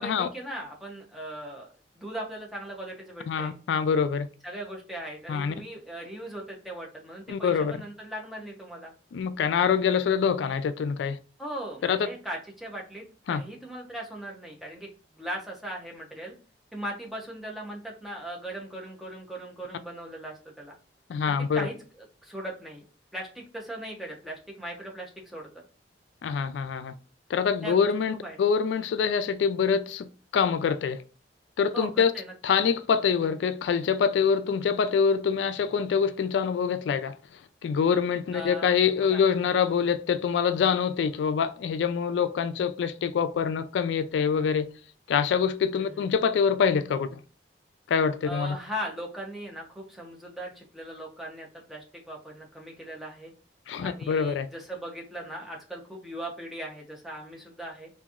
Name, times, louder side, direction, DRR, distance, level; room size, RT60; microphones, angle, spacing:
voice 1, 0.0-1.7 2.0-3.5 4.4-8.9 11.4-14.9 15.2-16.3 16.7-20.8 21.3-22.8 23.1-25.6 27.6-27.9 28.2-28.4 31.7-32.3 38.3-39.2 45.8-46.1 48.2-53.3 53.8-57.9, right 1 dB, ahead, 0.7 m, -39 dB
voice 2, 3.3-4.3 5.3-5.5 7.3-7.7 9.1-11.2 11.8-12.0 13.3-13.4 21.1-21.7 26.2-26.9 27.3-30.1 30.3-31.0 31.6-32.1 32.4-37.2 37.6-44.7 45.1-47.2 47.9-48.6 53.7-54.5, left 6 dB, 80° left, 0.3 m, -25 dB
2.9 x 2.6 x 2.4 m
head